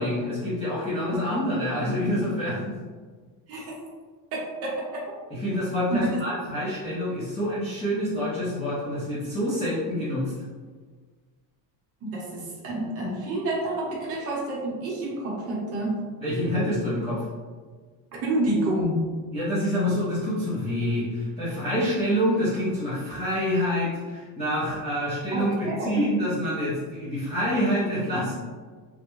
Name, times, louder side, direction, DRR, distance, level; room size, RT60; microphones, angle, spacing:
voice 1, 0.0-2.8 5.3-10.3 16.2-17.2 19.3-28.3, equal, 15° left, -11 dB, 0.3 m, -27 dB
voice 2, 3.5-3.8 4.3-5.1 5.9-6.2 12.0-16.0 18.1-19.1 25.3-25.9, right 1 dB, 35° right, -4 dB, 0.7 m, -28 dB
3.5 x 2.1 x 2.9 m, 1.5 s
cardioid pair, 180°, 41 cm